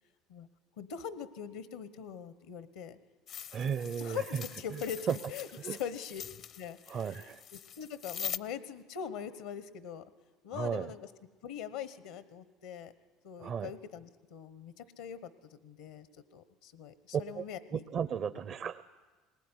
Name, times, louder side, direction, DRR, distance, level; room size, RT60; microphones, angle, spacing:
voice 1, 0.8-3.0 3.6-6.2 6.6-10.0 10.4-11.0 11.4-12.9 13.2-15.3 15.6-16.1 16.3-17.8, left 8 dB, 85° left, 14 dB, 1.1 m, -42 dB
sound 1, 3.3-8.4, left 9 dB, 50° left, 0.6 m, -44 dB
voice 2, 3.5-4.4 5.1-5.2 5.5-5.8 6.9-7.4 10.5-10.9 13.4-13.7 17.3-17.4 17.7-18.8, right 7 dB, 50° right, 13 dB, 0.8 m, -34 dB
20.5 x 19.5 x 9.9 m, 1.3 s
hypercardioid pair, 80°, 0 cm